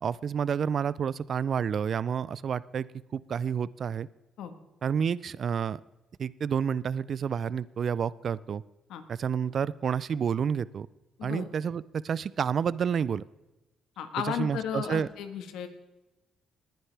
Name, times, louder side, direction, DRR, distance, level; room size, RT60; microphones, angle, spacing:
voice 1, 0.0-2.9 3.1-4.1 4.8-5.8 6.2-8.6 9.1-10.9 11.2-13.2 14.2-15.1, right 7 dB, 55° right, 19 dB, 0.4 m, -29 dB
voice 2, 14.0-15.7, left 8 dB, 85° left, 8 dB, 1.4 m, -34 dB
20.0 x 10.5 x 3.4 m, 1.0 s
cardioid pair, 90°, 0 cm